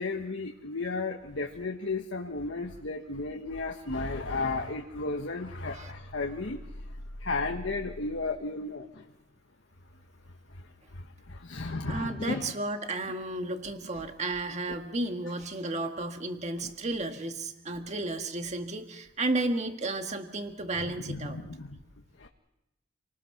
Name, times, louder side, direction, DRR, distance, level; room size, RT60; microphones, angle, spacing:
voice 1, 0.0-6.7 7.2-9.0 10.5-12.5 14.0-14.1 14.7-14.8 16.6-16.7 20.8-21.8 22.2-22.3, left 3 dB, 80° left, 2 dB, 1.4 m, -34 dB
voice 2, 11.9-21.4, right 2 dB, 35° right, 5 dB, 1.8 m, -33 dB
28.0 x 19.0 x 5.9 m, 0.89 s
head